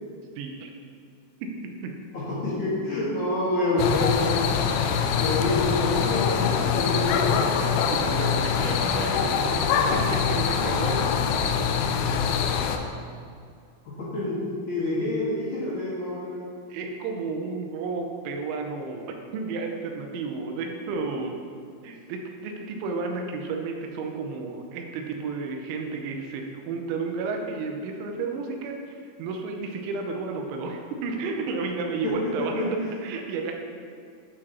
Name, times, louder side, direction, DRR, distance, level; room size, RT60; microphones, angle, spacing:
voice 1, 0.4-0.7 1.4-2.0 7.9-9.3 9.9-11.1 16.7-21.4 21.8-33.6, right 4 dB, 85° right, 3 dB, 3.1 m, -32 dB
voice 2, 2.1-4.4 5.2-7.4 13.8-14.4 14.7-16.5 32.4-32.7, left 2 dB, 55° left, -11 dB, 2.4 m, -27 dB
sound 1, 3.8-12.8, left 6 dB, 85° left, 2.3 m, -24 dB
11.0 x 4.8 x 2.9 m, 2.3 s
omnidirectional pair, 5.2 m